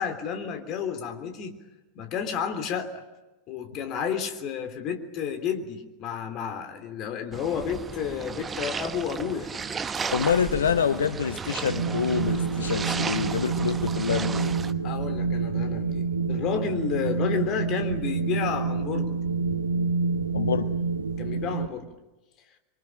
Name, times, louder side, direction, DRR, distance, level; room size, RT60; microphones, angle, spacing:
voice 1, 0.0-1.6 1.9-3.0 3.5-9.5 14.8-19.2 21.2-21.9, left 7 dB, 35° left, 7 dB, 3.3 m, -31 dB
sound 1, 7.3-14.7, right 5 dB, 20° right, 1.1 m, -34 dB
voice 2, 10.1-14.5 20.3-20.8, left 7 dB, 65° left, 12 dB, 0.9 m, -26 dB
Wind, 11.7-21.7, right 5 dB, 75° right, 1.0 m, -28 dB
25.5 x 24.0 x 8.8 m, 1.1 s
figure-of-eight pair, 90°, 0 cm